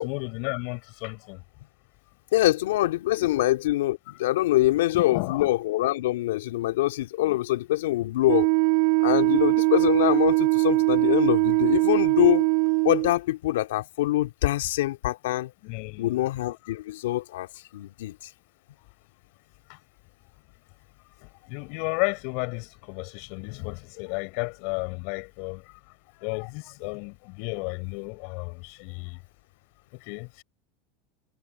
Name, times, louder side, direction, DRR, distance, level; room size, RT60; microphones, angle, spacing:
voice 1, 0.0-1.4 3.2-3.3 4.9-5.5 7.2-7.4 15.6-16.2 19.7-19.8 21.4-25.6 26.2-29.2 30.1-30.4, left 35 dB, 65° left, 7.3 m, -33 dB
voice 2, 2.3-8.5 9.0-12.5 12.8-15.5 16.0-18.1, left 16 dB, 80° left, 3.0 m, -24 dB
Wind instrument woodwind instrument, 8.3-13.1, right 40 dB or more, 65° right, 6.4 m, -21 dB
supercardioid pair, 105°, 0 cm